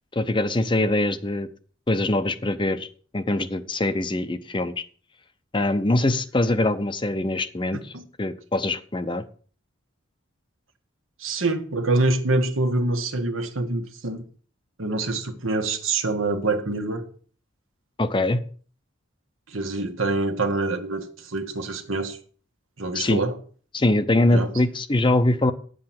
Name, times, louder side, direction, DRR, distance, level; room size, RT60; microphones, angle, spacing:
voice 1, 0.1-1.5 1.9-2.9 3.1-4.8 5.5-7.8 8.2-9.2 18.0-18.4 22.9-23.2 23.7-25.5, left 2 dB, 25° left, 0.7 m, -23 dB
voice 2, 7.7-8.0 11.2-14.2 14.8-17.0 19.5-22.2 22.8-23.4 24.3-24.5, right 2 dB, 80° right, 1.6 m, -25 dB
9.5 x 7.8 x 5.9 m
head